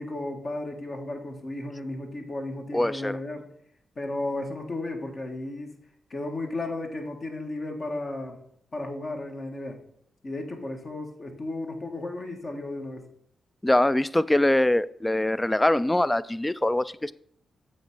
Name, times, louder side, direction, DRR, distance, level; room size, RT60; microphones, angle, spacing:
voice 1, 0.0-3.4 3.9-5.7 6.1-8.4 8.7-9.8 10.2-13.1, left 2 dB, 50° left, 3 dB, 1.5 m, -34 dB
voice 2, 2.7-3.2 13.6-17.1, left 1 dB, 15° left, 18 dB, 0.3 m, -23 dB
7.9 x 3.4 x 5.4 m, 0.70 s
supercardioid pair, 55°, 0 cm